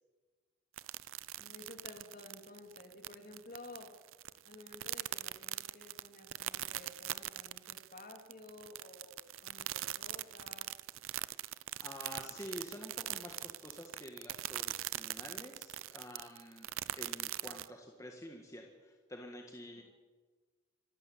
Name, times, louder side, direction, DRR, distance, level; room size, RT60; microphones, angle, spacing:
sound 1, 0.8-17.7, right 14 dB, 75° right, 0.6 m, -41 dB
voice 1, 1.3-3.9 4.5-10.7 19.8-19.9, left 2 dB, 40° left, 4 dB, 3.0 m, -53 dB
voice 2, 11.4-19.8, left 1 dB, 15° left, 2 dB, 1.7 m, -49 dB
25.5 x 14.0 x 8.6 m, 1.4 s
head